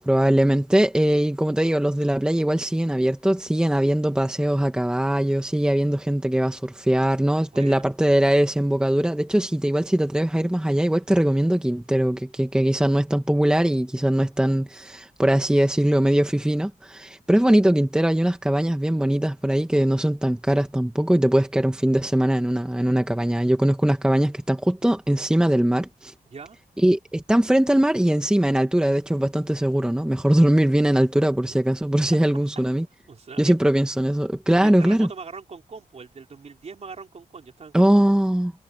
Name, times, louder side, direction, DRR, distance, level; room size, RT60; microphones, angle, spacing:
voice 1, 0.0-26.1 26.8-32.8 33.4-35.1 37.7-38.5, right 1 dB, 5° right, 1.1 m, -21 dB
voice 2, 7.5-7.9 26.3-26.6 31.5-31.6 32.2-32.3 33.1-33.5 34.5-37.9, right 5 dB, 45° right, 3.6 m, -41 dB
wide cardioid pair, 160°, 15 cm